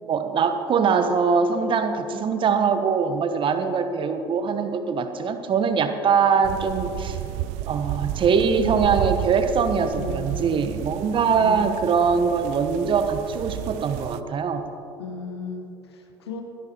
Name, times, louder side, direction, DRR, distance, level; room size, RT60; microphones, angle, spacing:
voice 1, 0.0-7.2 7.7-14.7, right 6 dB, 40° right, 8 dB, 1.2 m, -22 dB
sound 1, 6.4-14.2, right 14 dB, 55° right, 0.5 m, -32 dB
voice 2, 9.9-10.7 11.4-11.7 15.0-16.4, left 5 dB, 75° left, 4 dB, 1.3 m, -35 dB
26.5 x 11.0 x 3.0 m, 2.7 s
figure-of-eight pair, 60°, 14 cm